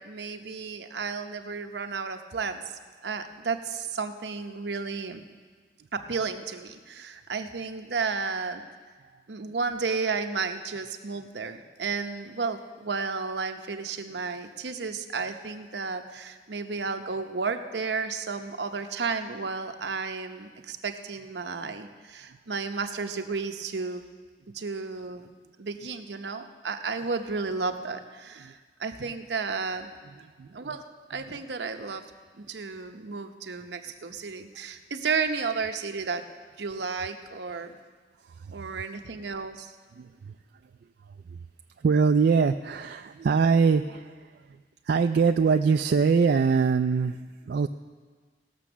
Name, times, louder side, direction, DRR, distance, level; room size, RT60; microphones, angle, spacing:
voice 1, 0.0-2.6 3.0-5.3 5.9-8.6 9.3-24.0 24.5-25.3 25.6-29.9 30.5-30.8 31.1-32.0 32.4-36.2 36.6-37.8 38.5-39.7, right 4 dB, 80° right, 7 dB, 0.8 m, -32 dB
voice 2, 30.2-30.7 38.2-38.8 40.0-40.3 41.3-41.4 41.8-44.6 44.8-47.7, right 5 dB, 65° right, 7 dB, 0.3 m, -24 dB
18.0 x 6.8 x 6.1 m, 1.5 s
head